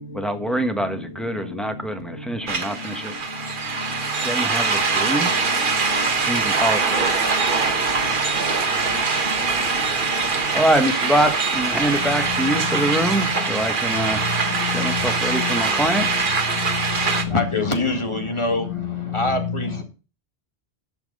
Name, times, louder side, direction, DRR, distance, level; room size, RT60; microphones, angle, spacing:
voice 1, 0.1-3.1 4.2-5.3 6.3-7.3 10.5-14.2 14.7-16.1, right 1 dB, ahead, 1.2 m, -24 dB
voice 2, 0.7-1.9 2.8-3.0 3.5-4.0 4.9-6.1 6.9-8.1 8.8-9.0 9.3-9.4 14.5-15.6 16.6-16.8 17.1-17.7 18.7-19.5, left 7 dB, 80° left, 1.9 m, -32 dB
sound 1, 2.5-17.2, right 4 dB, 55° right, 1.3 m, -23 dB
voice 3, 17.3-19.8, left 2 dB, 30° left, 2.1 m, -24 dB
11.0 x 6.0 x 5.4 m
omnidirectional pair, 1.1 m